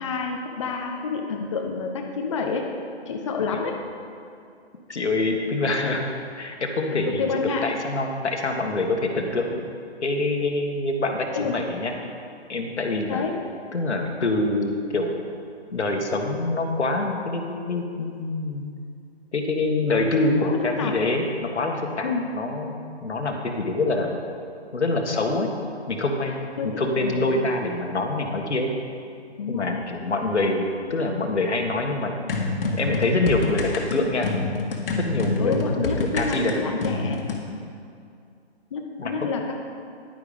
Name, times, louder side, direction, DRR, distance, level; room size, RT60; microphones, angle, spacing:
voice 1, 0.0-2.7 3.1-3.8 6.9-7.7 11.3-11.6 13.1-13.4 20.4-21.0 22.0-22.3 26.6-27.5 29.4-29.8 35.4-37.2 38.7-39.6, left 4 dB, 30° left, 2 dB, 0.7 m, -29 dB
voice 2, 4.9-6.0 6.3-9.7 10.0-11.9 12.5-13.2 13.7-15.2 15.7-18.7 19.3-21.3 21.5-24.2 24.7-25.5 25.9-28.7 29.5-32.1 32.7-34.3 35.0-35.6 36.0-36.7 39.0-39.1, left 2 dB, 85° left, 3 dB, 1.8 m, -25 dB
sound 1, 32.3-37.4, left 3 dB, 55° left, 1.7 m, -27 dB
10.5 x 9.6 x 5.1 m, 2.4 s
hypercardioid pair, 155°, 33 cm